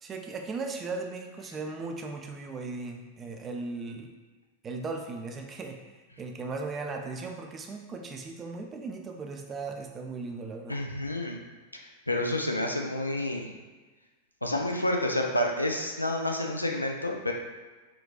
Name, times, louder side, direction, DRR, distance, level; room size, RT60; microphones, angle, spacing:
voice 1, 0.0-4.1 4.6-5.8 6.2-10.8, right 3 dB, 25° right, 3 dB, 0.4 m, -37 dB
voice 2, 10.7-11.4 11.7-11.8 12.1-13.5 14.4-17.3, left 1 dB, 85° left, 1 dB, 0.3 m, -29 dB
3.9 x 2.2 x 2.3 m, 1.3 s
figure-of-eight pair, 90°, 0 cm